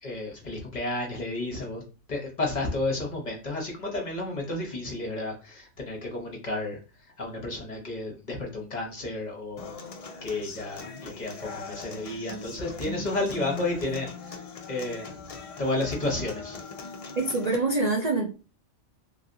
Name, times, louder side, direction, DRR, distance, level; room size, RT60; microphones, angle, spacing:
voice 1, 0.0-1.8 2.1-6.8 7.2-9.7 10.2-14.1 14.7-15.2 15.6-16.6, left 2 dB, 40° left, -1 dB, 0.8 m, -32 dB
Human voice / Acoustic guitar, 9.6-17.6, left 4 dB, 60° left, 0.3 m, -40 dB
voice 2, 17.2-18.3, right 3 dB, 50° right, -1 dB, 0.5 m, -25 dB
3.1 x 2.7 x 2.5 m, 0.33 s
omnidirectional pair, 1.3 m